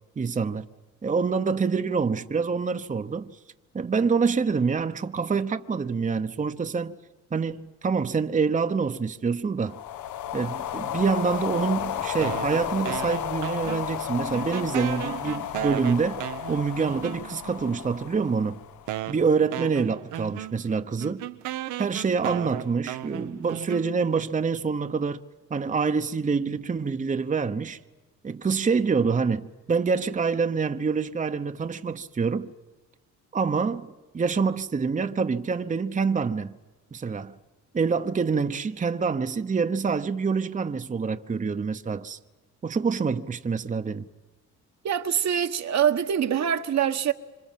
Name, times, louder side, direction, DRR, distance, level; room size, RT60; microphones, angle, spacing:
voice 1, 0.2-0.7 1.0-3.3 3.7-7.0 7.3-9.8 10.3-18.6 19.1-21.2 21.8-25.2 25.5-27.8 28.2-32.5 33.3-36.6 36.9-37.4 37.7-42.2 42.6-44.0, right 5 dB, 25° right, 0.9 m, -26 dB
sound 1, 9.6-19.1, left 11 dB, 75° left, 1.1 m, -33 dB
sound 2, 12.2-14.1 14.3-17.6 18.3-18.4 18.9-24.3, right 14 dB, 85° right, 1.0 m, -35 dB
voice 2, 44.8-47.1, right 9 dB, 60° right, 1.4 m, -24 dB
27.0 x 26.0 x 7.5 m
cardioid pair, 90°, 30 cm